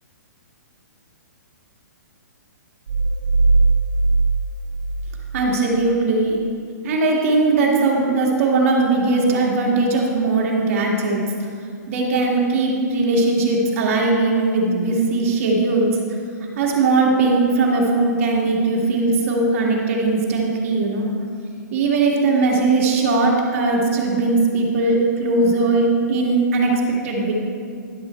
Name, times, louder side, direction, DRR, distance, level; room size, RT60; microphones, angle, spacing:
sound 1, 2.9-5.6, right 3 dB, 85° right, 1.0 m, -19 dB
voice 1, 5.3-6.4 6.8-11.2 11.9-16.0 16.6-21.1 21.7-27.3, right 3 dB, 45° right, -1 dB, 1.8 m, -19 dB
10.5 x 6.2 x 4.3 m, 2.2 s
hypercardioid pair, 155°, 10 cm